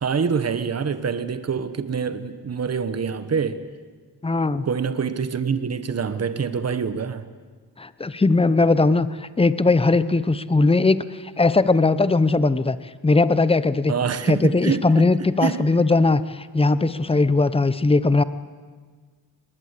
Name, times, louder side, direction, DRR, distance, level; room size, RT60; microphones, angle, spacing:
voice 1, 0.0-3.6 4.6-7.2 13.9-15.1 15.4-15.6, right 6 dB, 40° right, 1.1 m, -25 dB
voice 2, 4.2-4.7 7.8-12.8 13.0-13.9 14.2-18.2, left 3 dB, 15° left, 0.7 m, -19 dB
20.0 x 20.0 x 8.2 m
wide cardioid pair, 120°, 40 cm